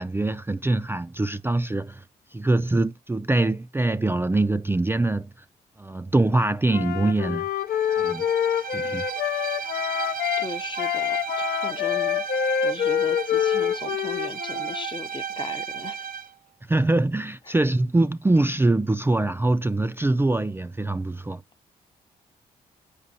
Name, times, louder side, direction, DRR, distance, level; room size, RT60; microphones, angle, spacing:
voice 1, 0.0-2.0 2.3-5.3 5.8-7.4 8.0-8.2 8.7-9.0 16.7-21.4, right 2 dB, 15° right, 0.4 m, -23 dB
Wind instrument woodwind instrument, 6.7-10.5 10.8-14.9, left 9 dB, 70° left, 0.6 m, -26 dB
Bowed string instrument, 7.7-16.3, right 8 dB, 55° right, 0.6 m, -34 dB
voice 2, 10.4-16.1 17.5-17.6, left 3 dB, 30° left, 0.7 m, -38 dB
8.4 x 5.1 x 2.7 m
supercardioid pair, 55°, 17 cm